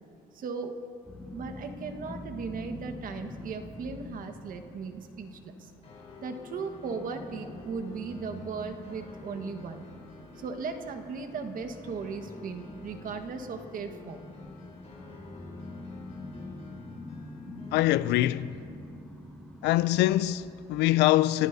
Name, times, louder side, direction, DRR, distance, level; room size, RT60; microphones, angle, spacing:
voice 1, 0.3-0.8 1.3-5.7 6.2-9.8 10.4-14.3, right 5 dB, 55° right, 1.4 m, -37 dB
sound 1, 1.0-20.9, left 2 dB, 5° left, 2.5 m, -45 dB
sound 2, 5.8-17.8, left 4 dB, 40° left, 4.0 m, -52 dB
voice 2, 17.7-18.5 19.6-21.5, left 15 dB, 85° left, 0.4 m, -24 dB
30.0 x 14.5 x 2.7 m
cardioid pair, 110°, 17 cm